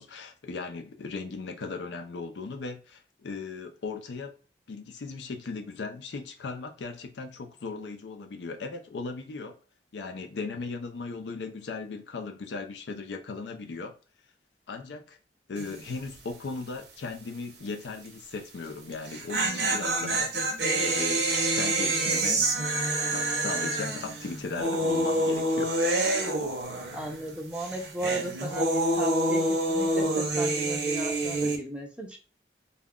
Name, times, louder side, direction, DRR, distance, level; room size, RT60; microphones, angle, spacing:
voice 1, 0.0-4.4 4.7-9.6 9.9-13.9 14.7-15.2 15.5-20.3 20.7-22.5 23.1-25.8, left 4 dB, 80° left, 0.5 m, -37 dB
sound 1, 15.6-15.9 16.2-16.3 18.9-27.3 27.5-31.6, right 1 dB, 75° right, 0.7 m, -27 dB
voice 2, 26.9-32.2, right 2 dB, 5° right, 0.5 m, -36 dB
2.3 x 2.1 x 3.5 m
head